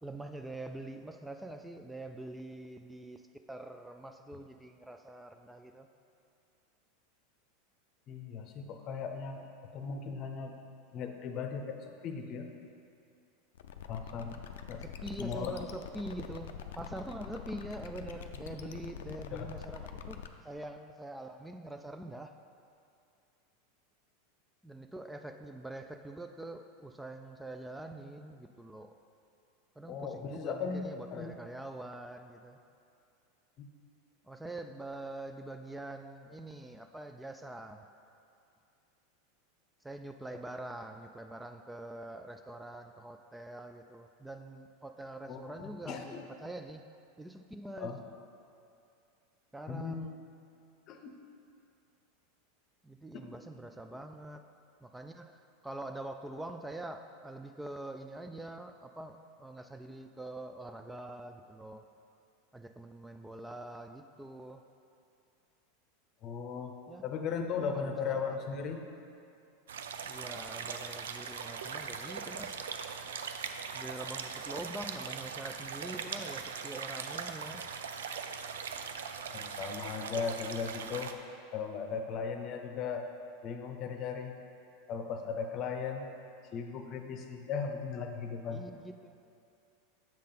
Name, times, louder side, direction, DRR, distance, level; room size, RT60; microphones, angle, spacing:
voice 1, 0.0-3.2 3.5-5.9 14.8-22.4 24.6-29.0 29.8-32.6 34.3-37.9 39.8-46.8 47.2-47.9 49.5-50.2 52.8-54.5 54.8-61.9 62.5-64.6 66.9-67.0 67.6-68.4 70.0-72.6 73.7-77.7 88.5-89.2, right 1 dB, 5° right, 7 dB, 0.3 m, -44 dB
voice 2, 8.1-9.4 9.7-10.6 10.9-12.5 13.9-14.4 14.7-14.8 15.2-15.5 19.3-19.5 29.9-31.3 33.6-33.7 45.3-46.2 47.8-48.0 49.7-50.1 50.9-51.2 53.1-53.2 66.2-66.8 67.0-68.9 79.3-81.1 81.5-83.1 83.4-84.3 84.9-86.1 86.5-88.6, left 6 dB, 45° left, 5 dB, 0.7 m, -37 dB
sound 1, 13.5-20.3, left 8 dB, 80° left, 0.4 m, -45 dB
sound 2, 69.7-81.1, right 6 dB, 90° right, 0.4 m, -40 dB
7.5 x 3.7 x 5.8 m, 2.5 s
hypercardioid pair, 110°, 0 cm